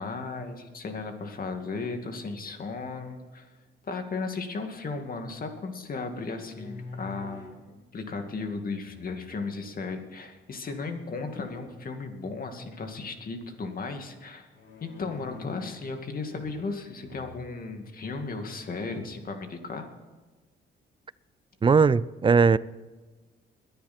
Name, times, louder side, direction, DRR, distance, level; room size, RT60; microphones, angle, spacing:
voice 1, 0.0-3.5 3.8-14.5 14.8-19.9, left 4 dB, 45° left, 2.4 m, -35 dB
sound 1, 6.3-7.6 8.8-9.5 11.0-11.6 14.5-15.9 16.3-16.8 17.0-17.4 18.0-18.1 18.5-19.2, left 4 dB, 70° left, 4.8 m, -46 dB
voice 2, 21.6-22.6, right 5 dB, 25° right, 0.4 m, -19 dB
22.0 x 10.5 x 4.4 m
cardioid pair, 90°, 20 cm